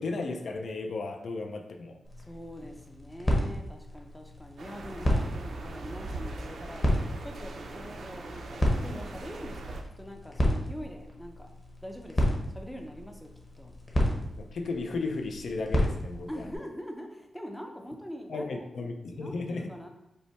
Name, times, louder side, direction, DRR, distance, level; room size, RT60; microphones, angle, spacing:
voice 1, 0.0-2.0 14.4-16.3 18.3-19.7, left 3 dB, 65° left, 4 dB, 0.5 m, -34 dB
sound 1, 2.0-16.6, equal, 20° left, 0.9 m, -32 dB
voice 2, 2.3-11.5 11.8-13.3 13.6-13.8 16.3-18.7 19.1-19.9, equal, 5° left, 2 dB, 0.5 m, -43 dB
sound 2, 4.6-9.8, right 2 dB, 70° right, 0.5 m, -41 dB
5.4 x 2.2 x 4.4 m, 0.87 s
wide cardioid pair, 145°, 0 cm